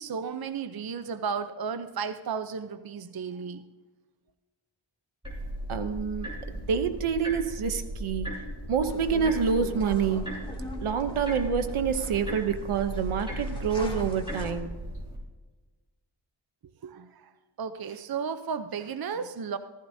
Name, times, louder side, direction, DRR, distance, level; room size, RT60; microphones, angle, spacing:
voice 1, 0.0-3.7 16.8-17.3 17.6-19.6, right 6 dB, 50° right, 10 dB, 0.7 m, -34 dB
sound 1, 5.2-15.2, equal, 10° right, 4.9 m, -36 dB
voice 2, 5.7-8.3 8.7-10.4 10.8-14.7, right 6 dB, 90° right, 9 dB, 0.9 m, -27 dB
sound 2, 8.9-14.5, left 1 dB, 10° left, 2.6 m, -42 dB
15.0 x 15.0 x 2.7 m, 1.3 s
cardioid pair, 65°, 49 cm